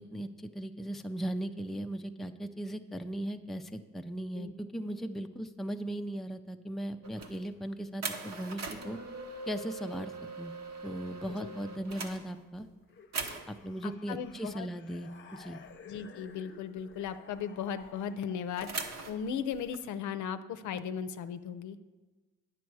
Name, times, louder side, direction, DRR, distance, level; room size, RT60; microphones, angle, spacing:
voice 1, 0.0-9.0 9.5-10.1 10.4-10.5 10.8-12.7 13.5-15.6, right 1 dB, ahead, 6 dB, 0.4 m, -38 dB
sound 1, 7.0-7.5 8.0-12.7 13.1-13.7 15.7-16.0 16.3-16.4 16.8-17.9 18.6-19.8, right 4 dB, 60° right, 1.1 m, -41 dB
sound 2, 12.9-18.7, left 5 dB, 40° left, 0.7 m, -54 dB
voice 2, 13.8-14.7 15.8-18.7 19.1-21.8, left 7 dB, 75° left, 11 dB, 0.6 m, -37 dB
9.4 x 7.2 x 4.6 m, 1.3 s
cardioid pair, 90°, 30 cm